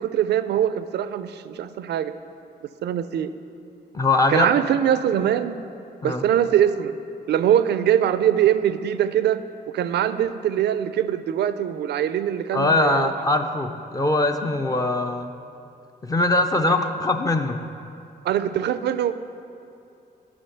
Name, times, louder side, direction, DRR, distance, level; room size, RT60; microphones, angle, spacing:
voice 1, 0.0-2.1 2.8-3.3 4.3-5.6 6.0-7.0 7.3-9.4 9.7-13.1 18.2-19.1, right 10 dB, 80° right, 12 dB, 0.4 m, -22 dB
voice 2, 3.9-4.5 6.0-6.2 12.5-15.3 16.0-17.7, left 2 dB, 20° left, 5 dB, 0.4 m, -22 dB
9.9 x 5.6 x 5.7 m, 2.6 s
cardioid pair, 110°, 17 cm